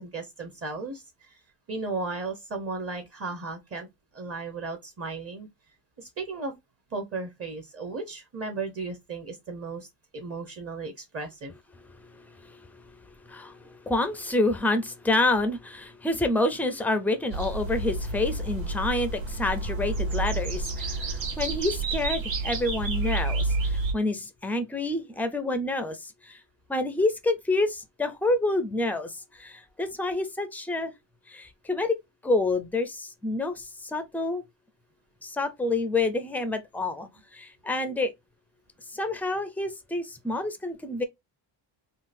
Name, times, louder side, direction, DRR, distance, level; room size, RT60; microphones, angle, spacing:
voice 1, 0.0-1.4 1.7-3.9 4.1-5.5 6.0-6.5 6.9-9.9 10.1-11.5, right 3 dB, 30° right, 0.8 m, -35 dB
voice 2, 12.1-12.6 13.3-13.6 13.8-26.4 26.7-30.9 31.3-32.0 32.2-34.4 35.2-38.1 38.9-41.0, left 2 dB, 5° left, 0.3 m, -28 dB
sound 1, 17.3-23.9, right 2 dB, 85° right, 1.4 m, -29 dB
3.7 x 2.4 x 2.5 m
cardioid pair, 155°, 45 cm